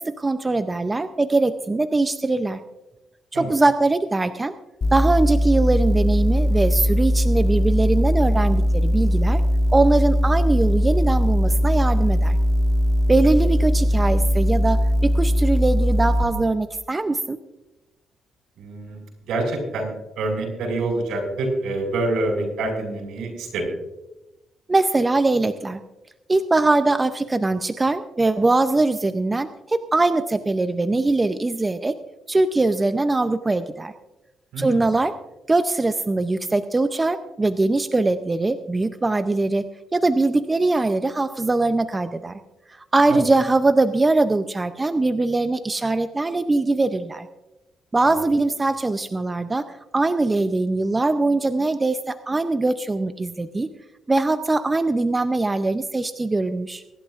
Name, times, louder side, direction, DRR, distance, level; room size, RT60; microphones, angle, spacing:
voice 1, 0.0-2.6 3.3-4.5 4.9-9.4 9.7-12.4 13.1-17.4 24.7-25.8 26.3-31.9 32.3-33.9 34.6-35.1 35.5-39.7 39.9-42.4 42.9-47.3 47.9-49.6 49.9-53.7 54.1-56.8, right 2 dB, 20° right, 10 dB, 0.6 m, -21 dB
sound 1, 4.8-16.2, equal, 45° left, 1.6 m, -20 dB
voice 2, 18.6-19.0 19.3-23.7 34.5-34.8 43.1-43.2, right 2 dB, 80° right, 1 dB, 5.4 m, -26 dB
24.5 x 11.5 x 2.5 m, 0.97 s
cardioid pair, 90°, 0 cm